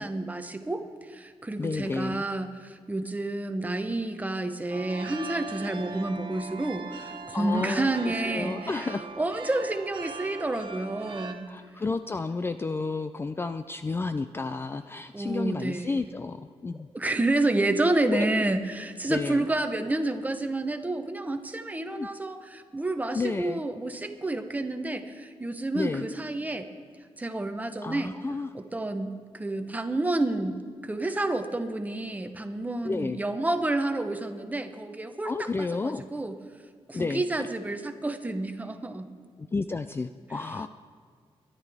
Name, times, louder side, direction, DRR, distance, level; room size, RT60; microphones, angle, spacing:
voice 1, 0.0-8.9 9.2-11.5 15.1-16.0 16.9-26.7 27.2-28.2 28.5-36.4 36.9-39.1, right 2 dB, 15° right, 7 dB, 0.9 m, -29 dB
voice 2, 1.6-2.2 7.3-9.0 11.5-16.9 18.1-18.4 19.1-19.5 21.9-22.1 23.1-23.6 25.7-26.1 27.8-28.5 32.8-33.2 35.2-36.0 36.9-37.5 39.4-40.7, left 3 dB, 20° left, 10 dB, 0.3 m, -31 dB
sound 1, 4.7-11.3, right 4 dB, 50° right, 1.1 m, -40 dB
23.0 x 11.0 x 3.5 m, 2.1 s
wide cardioid pair, 150°, 10 cm